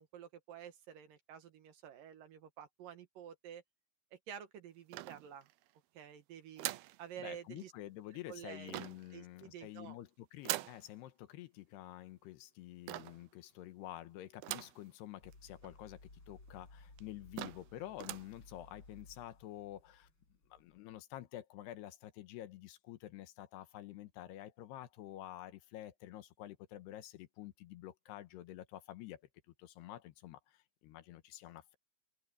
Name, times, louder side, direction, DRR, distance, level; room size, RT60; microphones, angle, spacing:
voice 1, 0.0-3.6 4.1-5.5 5.9-6.7 7.0-7.7 8.3-8.8 9.1-10.0, right 9 dB, 65° right, 2.7 m, -50 dB
sound 1, 4.9-5.7 6.6-7.0 8.7-9.1 10.4-10.8 12.9-13.3 14.4-14.8 15.3-15.4 15.6-15.7 16.5-16.6 17.0-17.1 17.4-17.7 18.0-18.3, right 17 dB, 80° right, 2.4 m, -42 dB
voice 2, 7.2-20.1 20.5-29.2 29.6-31.8, left 14 dB, 80° left, 3.2 m, -49 dB
sound 2, 15.2-21.0, left 2 dB, 30° left, 7.5 m, -59 dB
omnidirectional pair, 4.8 m